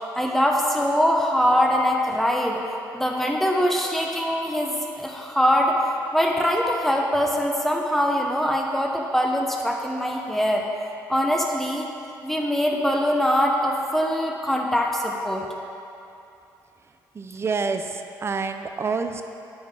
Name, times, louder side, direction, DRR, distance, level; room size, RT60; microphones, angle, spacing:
voice 1, 0.1-2.6 2.9-5.8 6.1-10.7 11.1-11.9 12.2-15.5, equal, 5° left, 0 dB, 1.0 m, -23 dB
voice 2, 17.1-19.2, right 4 dB, 35° right, 7 dB, 0.5 m, -27 dB
9.3 x 4.7 x 3.8 m, 2.7 s
supercardioid pair, 70°, 8 cm